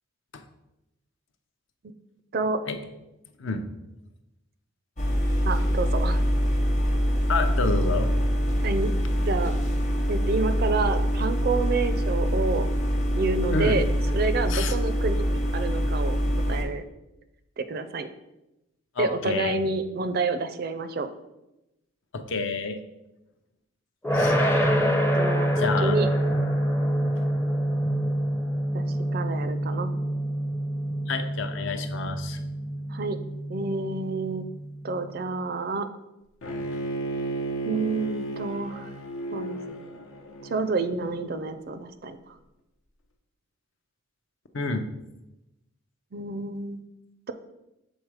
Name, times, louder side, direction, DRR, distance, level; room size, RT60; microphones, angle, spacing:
sound 1, 5.0-16.6, equal, 35° left, 0.9 m, -24 dB
voice 1, 5.5-6.2 8.6-8.9 9.3-9.6 10.1-12.7 13.1-13.9 14.1-16.2 16.5-16.8 17.6-18.1 19.0-21.1 25.2-26.1 28.7-28.8 29.1-29.9 32.9-33.2 33.5-34.5 34.8-35.9 37.7-38.9 39.3-39.6 40.4-42.4 46.1-46.8, right 3 dB, 45° right, 10 dB, 0.4 m, -29 dB
voice 2, 7.3-8.1 13.5-13.8 14.5-14.7 19.0-19.6 22.1-22.8 24.1-24.4 25.6-26.0 31.1-32.4 44.5-44.8, left 4 dB, 60° left, 7 dB, 0.6 m, -28 dB
sound 2, 24.0-35.0, equal, 10° left, 0.5 m, -26 dB
Bowed string instrument, 36.4-41.5, right 2 dB, 80° left, 1.0 m, -34 dB
6.3 x 3.9 x 4.7 m, 0.93 s
head